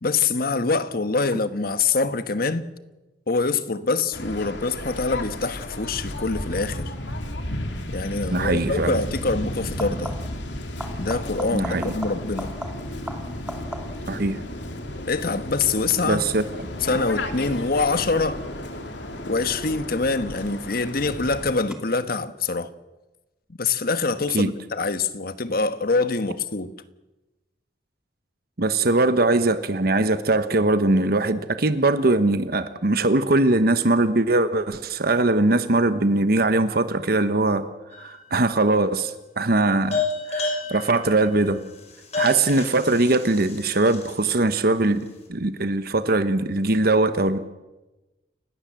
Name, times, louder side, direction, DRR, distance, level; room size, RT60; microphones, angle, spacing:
voice 1, 0.0-2.6 3.3-6.9 7.9-10.1 11.0-12.5 15.1-16.3 16.8-18.4 19.3-22.7 23.6-26.7, left 4 dB, 55° left, 1.3 m, -25 dB
Waves surf, 4.1-21.5, left 1 dB, 85° left, 2.9 m, -33 dB
sound 1, 8.2-8.5 9.6-10.5 10.8-14.2 19.6-20.2 21.7-21.8, equal, 5° right, 2.7 m, -37 dB
voice 2, 8.3-9.0 11.5-11.9 14.1-14.4 16.0-16.4 24.3-24.5 28.6-37.7 38.0-41.6 42.1-47.4, right 2 dB, 55° right, 1.1 m, -21 dB
sound 2, 37.9-38.5 39.9-44.4, left 3 dB, 40° left, 5.9 m, -30 dB
29.5 x 17.5 x 7.5 m
head